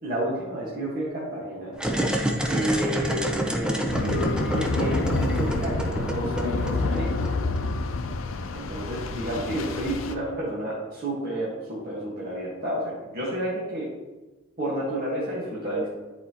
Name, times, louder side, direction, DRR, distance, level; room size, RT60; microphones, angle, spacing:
voice 1, 0.0-1.7 2.5-7.1 8.5-13.9 14.6-15.9, right 1 dB, 50° right, -7 dB, 1.4 m, -30 dB
sound 1, 1.7-7.6, right 1 dB, 5° right, 0.5 m, -28 dB
sound 2, 3.9-10.1, left 3 dB, 75° left, 0.5 m, -28 dB
9.7 x 4.2 x 2.9 m, 1.2 s
head